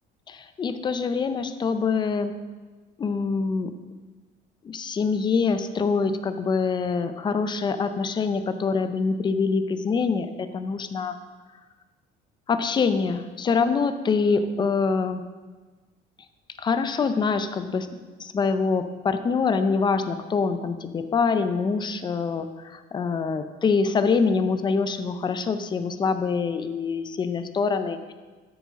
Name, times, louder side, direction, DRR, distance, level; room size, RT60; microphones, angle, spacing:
voice 1, 0.3-2.3 3.0-3.7 4.6-10.3 10.5-11.1 12.5-15.2 16.6-17.9 18.2-28.1, left 5 dB, 20° left, 10 dB, 0.5 m, -25 dB
12.5 x 7.1 x 3.7 m, 1.3 s
cardioid pair, 155°, 21 cm